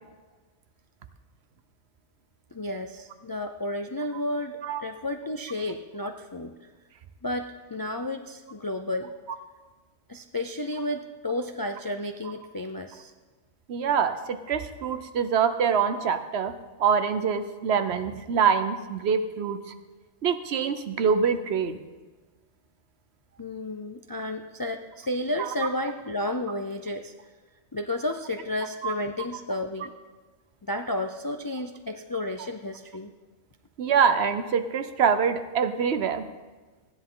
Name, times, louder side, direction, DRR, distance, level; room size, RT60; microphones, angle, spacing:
voice 1, 2.5-6.5 7.2-9.1 10.1-13.1 23.4-27.1 27.7-29.9 30.7-33.1, left 1 dB, 35° left, 5 dB, 0.3 m, -32 dB
voice 2, 13.7-16.5 16.8-19.6 20.2-21.8 25.4-25.5 28.8-28.9 33.8-36.2, right 6 dB, 70° right, 10 dB, 1.0 m, -25 dB
15.5 x 10.0 x 3.8 m, 1.3 s
omnidirectional pair, 1.2 m